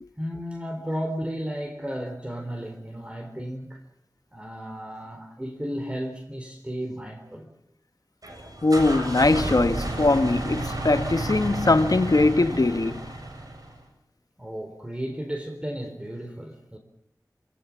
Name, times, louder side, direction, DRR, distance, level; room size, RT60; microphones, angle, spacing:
voice 1, 0.2-3.8 4.3-7.5 14.4-16.8, equal, 15° right, 3.9 m, -34 dB
sound 1, 8.2-13.8, right 1 dB, 60° right, 7.7 m, -32 dB
voice 2, 8.6-13.1, left 2 dB, 60° left, 1.3 m, -21 dB
28.0 x 17.5 x 7.3 m
wide cardioid pair, 55°, 7 cm